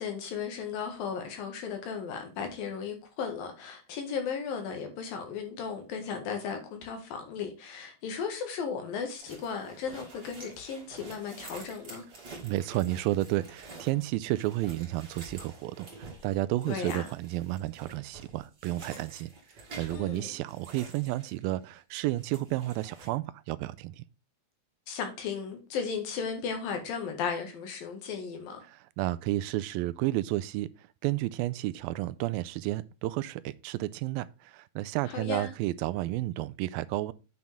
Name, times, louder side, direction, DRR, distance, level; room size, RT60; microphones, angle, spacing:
voice 1, 0.0-12.0 16.7-17.1 19.9-20.3 24.9-28.6 35.1-35.5, left 6 dB, 75° left, 3.5 m, -35 dB
sound 1, 9.2-21.8 22.0-23.1, right 3 dB, 35° right, 2.3 m, -49 dB
voice 2, 12.4-24.0 28.6-30.7 31.0-37.1, right 16 dB, 85° right, 2.3 m, -32 dB
8.7 x 6.0 x 3.5 m
omnidirectional pair, 4.2 m